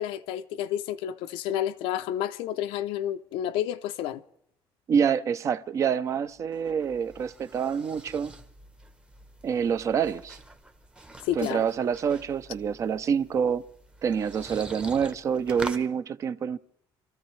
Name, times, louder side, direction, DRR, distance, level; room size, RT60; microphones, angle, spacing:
voice 1, 0.0-4.2 11.2-11.6, left 11 dB, 85° left, 0.6 m, -30 dB
voice 2, 4.9-8.3 9.4-10.4 11.4-13.7 14.0-16.6, right 7 dB, 35° right, 0.6 m, -27 dB
sound 1, 6.3-15.9, right 1 dB, 10° right, 0.9 m, -45 dB
27.5 x 14.0 x 3.2 m
cardioid pair, 155°, 9 cm